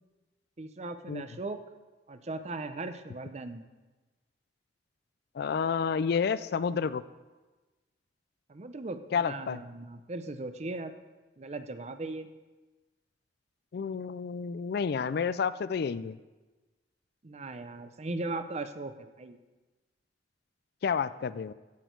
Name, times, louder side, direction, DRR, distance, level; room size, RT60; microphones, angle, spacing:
voice 1, 0.6-1.6 2.1-3.7 8.5-10.9 11.4-12.3 17.2-19.4, right 2 dB, 40° right, 10 dB, 0.6 m, -38 dB
voice 2, 5.4-7.0 9.1-9.6 13.7-16.2 20.8-21.5, left 6 dB, 60° left, 16 dB, 0.3 m, -30 dB
16.0 x 6.3 x 4.6 m, 1.2 s
head